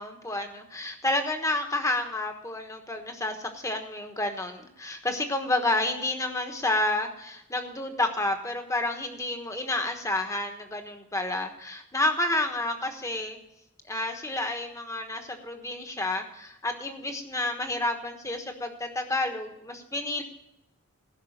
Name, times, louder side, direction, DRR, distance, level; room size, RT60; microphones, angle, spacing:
voice 1, 0.0-13.4 13.9-20.2, left 2 dB, 15° left, 5 dB, 1.1 m, -30 dB
15.0 x 6.0 x 7.2 m, 0.81 s
head